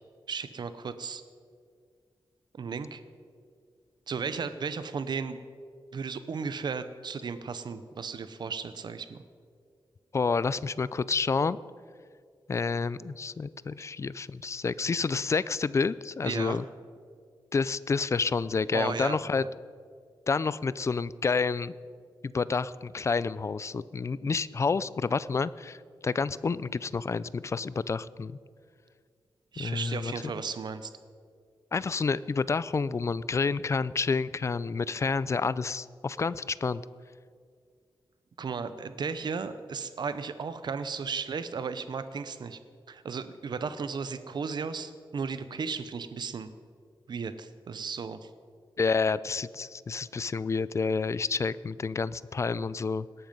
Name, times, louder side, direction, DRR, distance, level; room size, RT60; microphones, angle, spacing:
voice 1, 0.3-1.2 2.5-3.0 4.1-5.4 5.9-9.2 16.2-16.6 18.7-19.5 29.5-30.9 38.4-42.6 42.9-46.5 47.1-48.3, right 5 dB, 55° right, 12 dB, 0.7 m, -35 dB
voice 2, 10.1-11.6 12.5-16.6 17.5-19.4 20.3-21.7 22.2-25.8 26.0-28.4 29.6-30.1 31.7-36.8 48.8-53.1, left 4 dB, 35° left, 18 dB, 0.4 m, -29 dB
18.0 x 12.5 x 5.4 m, 2.1 s
wide cardioid pair, 175°, 9 cm